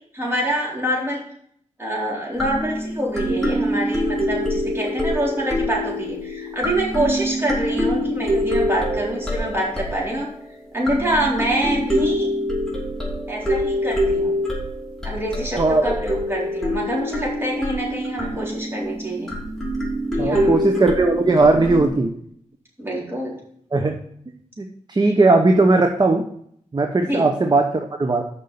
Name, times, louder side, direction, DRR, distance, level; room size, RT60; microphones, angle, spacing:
voice 1, 0.1-1.2 1.8-10.3 10.7-12.3 13.3-14.3 15.0-19.3 20.1-20.6 22.8-23.4 27.0-27.3, right 1 dB, 20° right, -4 dB, 3.8 m, -25 dB
sound 1, 2.3-10.4 10.9-21.9, equal, 5° left, 2.9 m, -25 dB
voice 2, 20.2-22.1 23.7-24.0 24.6-26.2 26.7-28.2, right 3 dB, 35° right, 5 dB, 0.9 m, -18 dB
6.6 x 5.4 x 6.9 m, 0.66 s
cardioid pair, 60°, 13 cm